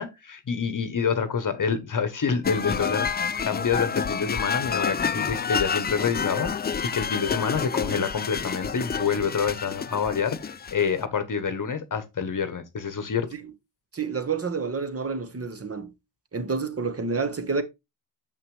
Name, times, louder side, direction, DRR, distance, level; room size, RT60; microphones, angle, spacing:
voice 1, 0.0-13.3, left 6 dB, 40° left, 1.1 m, -27 dB
sound 1, 2.4-11.0, left 6 dB, 20° left, 0.4 m, -29 dB
voice 2, 13.9-15.9 16.3-17.6, right 4 dB, 30° right, 1.3 m, -29 dB
7.0 x 5.8 x 3.2 m
supercardioid pair, 60°, 48 cm